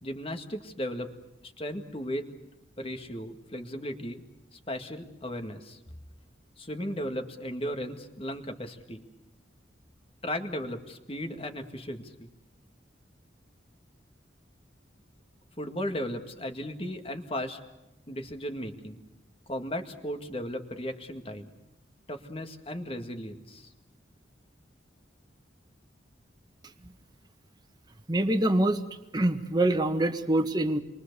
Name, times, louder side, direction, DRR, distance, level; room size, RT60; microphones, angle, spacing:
voice 1, 0.0-1.1 1.4-2.3 2.8-4.2 4.5-5.8 6.6-9.0 10.2-12.3 15.6-17.6 18.1-19.0 19.5-21.5 22.1-23.7, equal, 30° left, 6 dB, 2.0 m, -36 dB
voice 2, 28.1-28.8 29.1-30.8, right 1 dB, 20° right, 7 dB, 1.6 m, -25 dB
28.0 x 23.5 x 6.9 m, 0.96 s
head